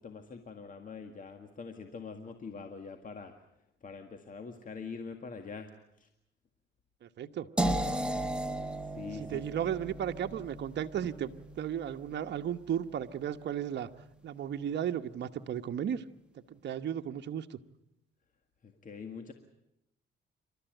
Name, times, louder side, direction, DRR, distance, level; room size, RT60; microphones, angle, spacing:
voice 1, 0.0-3.3 3.8-5.7 6.0-6.1 8.8-9.7 18.6-19.3, left 5 dB, 40° left, 6 dB, 1.9 m, -44 dB
voice 2, 7.0-7.5 9.3-13.9 14.2-16.0 16.5-17.6, right 9 dB, 60° right, 6 dB, 1.1 m, -35 dB
sound 1, 7.6-13.5, right 1 dB, 5° right, 1.7 m, -36 dB
28.5 x 13.0 x 9.1 m, 0.85 s
cardioid pair, 90°, 20 cm